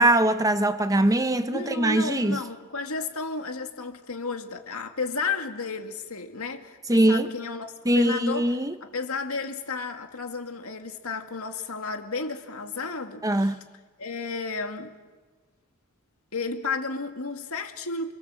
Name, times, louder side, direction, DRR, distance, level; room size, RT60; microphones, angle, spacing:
voice 1, 0.0-2.4 6.9-7.3 7.8-8.8 13.2-13.6, right 1 dB, 15° right, 0.9 m, -22 dB
voice 2, 1.5-6.8 7.1-13.6 14.0-15.0 16.3-18.1, left 4 dB, 80° left, 2.1 m, -33 dB
29.0 x 23.0 x 7.6 m
head